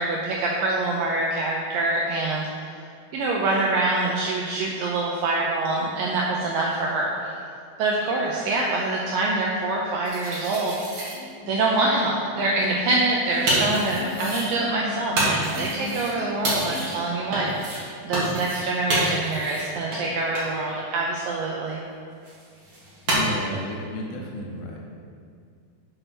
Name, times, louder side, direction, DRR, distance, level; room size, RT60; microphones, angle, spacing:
voice 1, 0.0-2.5 3.1-7.3 7.8-11.0 11.5-21.8, right 2 dB, 80° right, -2 dB, 2.0 m, -25 dB
sound 1, 10.0-11.2 12.9-14.5 15.2-16.1 16.4-17.0 17.3-17.8 18.1-18.6 18.9-19.7 19.9-20.0 20.3-20.5 22.2-23.2, right 1 dB, 40° right, 1.7 m, -28 dB
sound 2, 10.4-16.8, left 9 dB, 45° left, 3.3 m, -38 dB
voice 2, 23.1-24.8, left 1 dB, 80° left, -1 dB, 3.1 m, -32 dB
6.6 x 6.1 x 6.1 m, 2.3 s
omnidirectional pair, 4.8 m